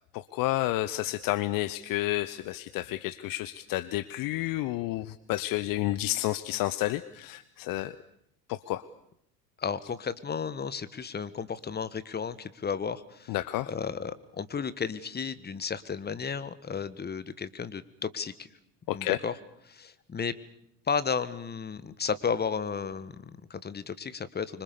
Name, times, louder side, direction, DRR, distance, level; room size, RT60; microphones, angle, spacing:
voice 1, 0.1-8.0 8.5-8.8 13.3-13.7 18.9-19.2, left 16 dB, 45° left, 14 dB, 0.9 m, -30 dB
voice 2, 9.6-13.4 13.7-18.5 18.9-19.3 19.7-20.3 20.9-24.6, left 6 dB, 20° left, 14 dB, 1.6 m, -33 dB
25.5 x 25.0 x 7.0 m, 0.74 s
figure-of-eight pair, 65°, 48 cm